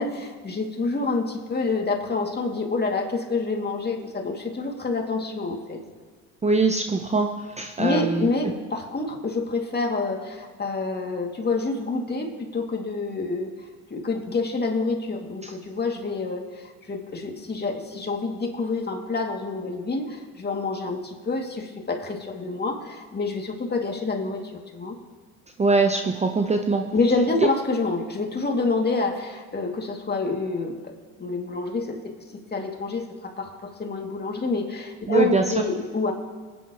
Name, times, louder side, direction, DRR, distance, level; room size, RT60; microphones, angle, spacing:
voice 1, 0.0-5.8 7.8-13.5 13.9-25.0 26.9-32.1 32.5-36.1, left 3 dB, 25° left, 2 dB, 2.3 m, -27 dB
voice 2, 6.4-8.3 15.4-15.5 25.6-26.9 35.1-35.4, right 3 dB, 20° right, 5 dB, 0.8 m, -22 dB
24.5 x 9.5 x 3.0 m, 1.5 s
hypercardioid pair, 70°, 38 cm